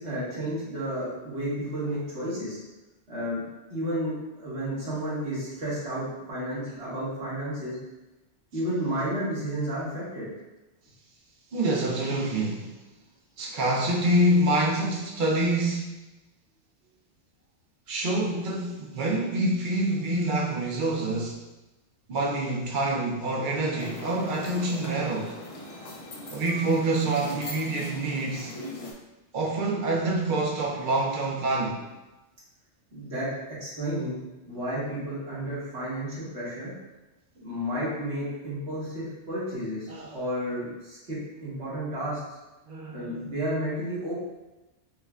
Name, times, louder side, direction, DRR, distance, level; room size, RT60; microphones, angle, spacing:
voice 1, 0.0-2.6 3.1-3.4 3.7-7.8 8.5-10.3 32.9-34.2 34.5-36.7 37.4-42.2 42.9-44.1, equal, 70° right, -9 dB, 1.8 m, -32 dB
voice 2, 11.5-12.7 13.4-15.9 17.9-21.4 22.1-25.4 26.3-28.5 29.3-31.9 39.9-40.2 42.7-43.2, right 1 dB, 55° right, -1 dB, 0.7 m, -26 dB
sound 1, 23.8-28.9, left 1 dB, 45° left, 0.5 m, -40 dB
5.3 x 2.2 x 2.4 m, 1.1 s
omnidirectional pair, 1.2 m